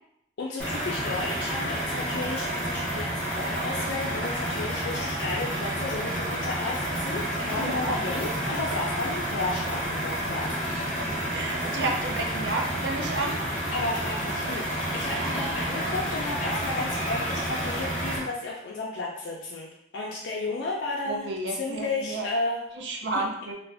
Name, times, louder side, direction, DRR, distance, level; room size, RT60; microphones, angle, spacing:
voice 1, 0.4-11.2 13.1-13.4 13.7-22.6 23.1-23.2, left 3 dB, 85° left, -3 dB, 0.4 m, -33 dB
sound 1, 0.6-18.2, right 1 dB, 5° left, 0.7 m, -30 dB
voice 2, 7.5-8.0 10.7-13.4 15.2-15.5 21.0-22.3 22.8-23.5, right 2 dB, 75° right, 2 dB, 0.5 m, -32 dB
2.5 x 2.1 x 3.3 m, 0.79 s
head